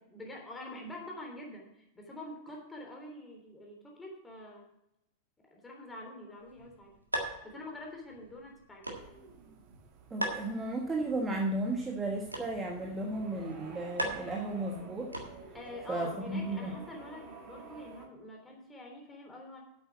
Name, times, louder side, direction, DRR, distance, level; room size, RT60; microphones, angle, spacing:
voice 1, 0.1-4.7 5.5-7.0 7.4-8.9 15.5-19.6, left 1 dB, 15° left, 0 dB, 3.2 m, -46 dB
sound 1, 6.4-15.7, right 1 dB, 85° right, 1.7 m, -42 dB
sound 2, 8.9-18.1, right 4 dB, 40° right, 1.9 m, -51 dB
voice 2, 10.1-15.1 15.9-16.7, right 2 dB, 15° right, 1 dB, 1.4 m, -34 dB
8.5 x 8.3 x 6.0 m, 0.85 s
figure-of-eight pair, 90°, 0 cm